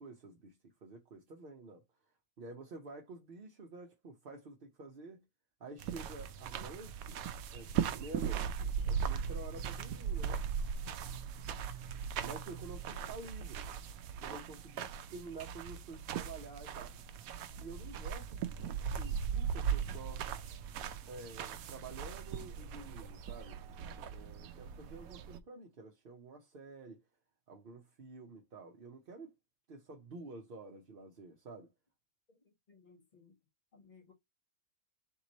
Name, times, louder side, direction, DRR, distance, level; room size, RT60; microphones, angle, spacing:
voice 1, 0.0-1.8 2.4-5.2 5.6-7.2 7.5-8.5 8.9-10.4 12.2-13.7 14.2-16.9 17.6-18.5 18.9-20.3 21.1-23.6 24.1-27.0 27.5-29.4 29.7-31.7, right 3 dB, 50° right, 0.8 m, -49 dB
sound 1, 5.8-25.4, right 7 dB, 85° right, 1.0 m, -39 dB
voice 2, 32.3-33.4 33.7-34.1, left 5 dB, 35° left, 1.2 m, -62 dB
3.6 x 3.0 x 4.0 m
omnidirectional pair, 1.5 m